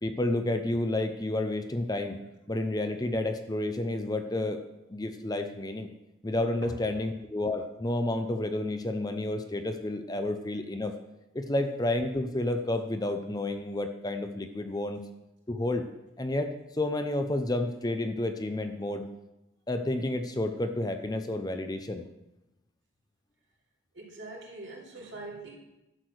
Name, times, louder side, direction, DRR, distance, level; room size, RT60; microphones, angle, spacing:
voice 1, 0.0-2.2 2.5-4.6 4.9-5.9 6.2-10.9 11.3-15.0 15.5-15.8 16.2-19.1 19.7-22.0, left 1 dB, 20° left, 7 dB, 0.6 m, -30 dB
voice 2, 23.9-25.6, right 2 dB, 70° right, -2 dB, 3.0 m, -43 dB
11.5 x 6.6 x 6.3 m, 0.93 s
head